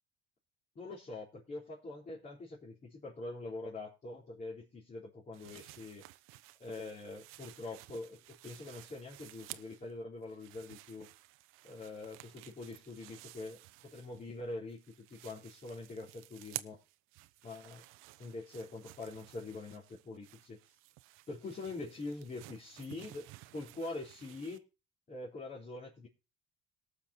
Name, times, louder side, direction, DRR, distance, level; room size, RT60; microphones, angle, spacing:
voice 1, 0.8-6.1 6.6-11.1 11.6-16.8 17.4-17.8 18.2-20.6 21.3-23.3 23.5-24.6 25.1-26.1, left 2 dB, 35° left, -4 dB, 3.9 m, -44 dB
sound 1, 5.3-9.9 10.2-14.4 14.7-24.6, right 18 dB, 80° right, 0.7 m, -53 dB
18.5 x 6.3 x 4.3 m, 0.32 s
supercardioid pair, 95°, 21 cm